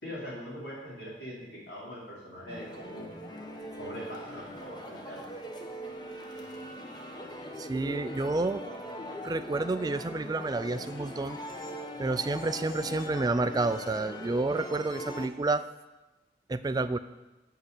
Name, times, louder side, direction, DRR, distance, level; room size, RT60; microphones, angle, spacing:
voice 1, 0.0-3.1 3.8-5.2, equal, 70° left, -6 dB, 4.1 m, -42 dB
sound 1, 2.5-15.3, equal, 25° left, 1.0 m, -41 dB
voice 2, 7.6-8.6 9.2-11.4 12.0-15.6 16.5-17.0, right 2 dB, 20° right, 11 dB, 0.3 m, -29 dB
8.8 x 5.6 x 8.1 m, 1.1 s
head